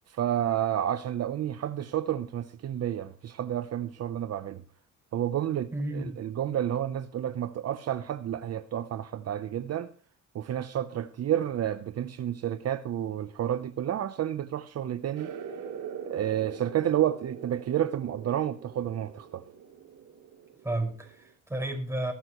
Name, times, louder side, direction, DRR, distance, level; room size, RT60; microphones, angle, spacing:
voice 1, 0.1-4.6 5.1-9.9 10.3-15.3 16.1-19.4, right 11 dB, 55° right, 0.8 m, -30 dB
voice 2, 5.7-6.2 20.6-22.1, right 1 dB, 10° right, 5.5 m, -32 dB
sound 1, 15.1-21.3, right 7 dB, 90° right, 3.2 m, -43 dB
19.5 x 12.5 x 3.1 m
cardioid pair, 90°, 30 cm